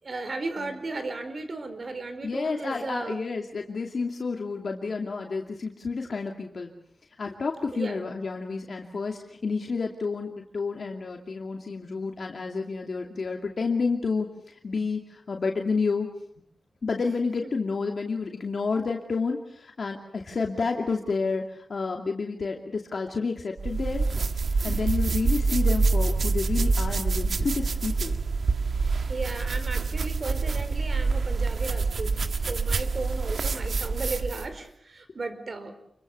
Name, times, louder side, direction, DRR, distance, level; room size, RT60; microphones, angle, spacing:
voice 1, 0.0-3.2 3.6-3.7 7.7-8.0 29.1-35.7, right 3 dB, 50° right, 9 dB, 4.7 m, -35 dB
voice 2, 2.2-6.7 7.2-16.1 16.8-24.0 24.6-28.2, left 4 dB, 55° left, 2 dB, 2.6 m, -30 dB
sound 1, 23.6-34.5, right 4 dB, 65° right, 1.6 m, -26 dB
29.0 x 23.5 x 6.9 m, 0.67 s
wide cardioid pair, 100°, 0 cm